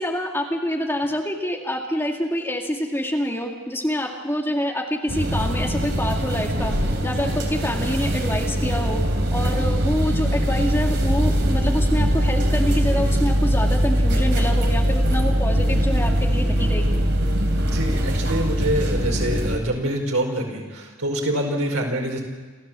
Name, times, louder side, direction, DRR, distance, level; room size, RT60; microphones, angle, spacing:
voice 1, 0.0-6.7 7.0-9.0 9.3-16.8, equal, 10° left, 0 dB, 2.2 m, -26 dB
sound 1, 5.1-19.6, equal, 55° right, 3.0 m, -21 dB
voice 2, 17.5-22.2, right 1 dB, 90° right, 2 dB, 4.9 m, -25 dB
28.0 x 14.5 x 7.6 m, 1.4 s
head